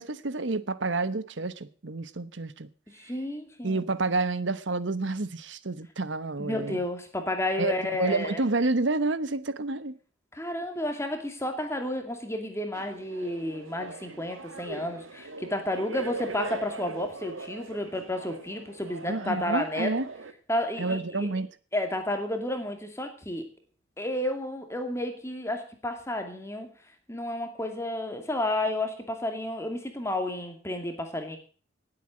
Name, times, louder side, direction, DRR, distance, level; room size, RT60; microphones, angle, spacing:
voice 1, 0.0-2.7 3.6-6.8 7.6-10.0 19.0-20.1 20.8-21.5, right 3 dB, 65° right, 1.0 m, -29 dB
voice 2, 2.9-3.8 6.4-8.4 10.3-19.9 20.5-21.3 21.7-23.5 24.0-26.7 27.1-31.4, left 1 dB, 15° left, 2.3 m, -31 dB
sound 1, 12.7-20.3, right 3 dB, 85° right, 1.4 m, -41 dB
18.5 x 8.2 x 6.2 m
head